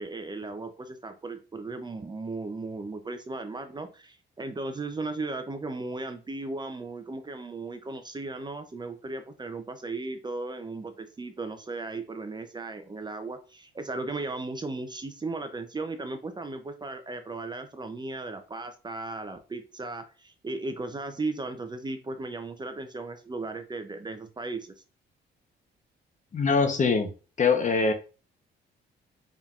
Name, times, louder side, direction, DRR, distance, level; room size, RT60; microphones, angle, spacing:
voice 1, 0.0-24.7, right 3 dB, 20° right, 8 dB, 0.6 m, -36 dB
voice 2, 26.3-27.1 27.4-27.9, left 4 dB, 40° left, 6 dB, 0.9 m, -23 dB
4.2 x 3.6 x 2.4 m, 0.33 s
cardioid pair, 90°, 20 cm